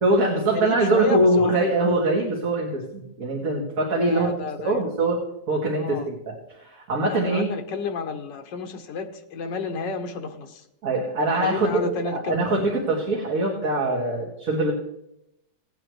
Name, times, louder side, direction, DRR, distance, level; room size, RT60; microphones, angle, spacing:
voice 1, 0.0-5.2 5.5-7.5 10.8-14.7, right 2 dB, 50° right, -3 dB, 2.1 m, -23 dB
voice 2, 0.5-1.7 4.1-4.8 5.8-6.1 7.1-10.6 11.3-12.7, left 5 dB, 80° left, 4 dB, 1.7 m, -31 dB
17.5 x 9.3 x 3.1 m, 0.82 s
omnidirectional pair, 1.9 m